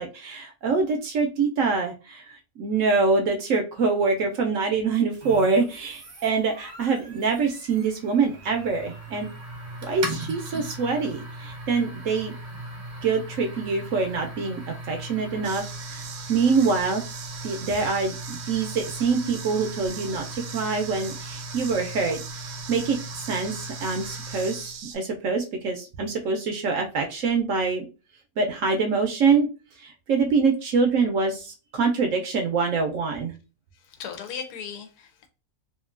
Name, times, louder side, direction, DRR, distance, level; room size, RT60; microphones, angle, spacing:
voice 1, 0.0-9.3 9.8-12.3 13.0-17.0 17.4-22.2 22.7-27.9 28.4-29.5 29.8-33.3, right 4 dB, 70° right, 0.8 m, -25 dB
sound 1, 5.2-24.8, right 1 dB, 40° right, 0.7 m, -39 dB
sound 2, 15.4-25.0, right 7 dB, 90° right, 1.2 m, -40 dB
voice 2, 33.8-35.3, left 7 dB, 90° left, 1.2 m, -37 dB
2.9 x 2.5 x 2.4 m
omnidirectional pair, 1.7 m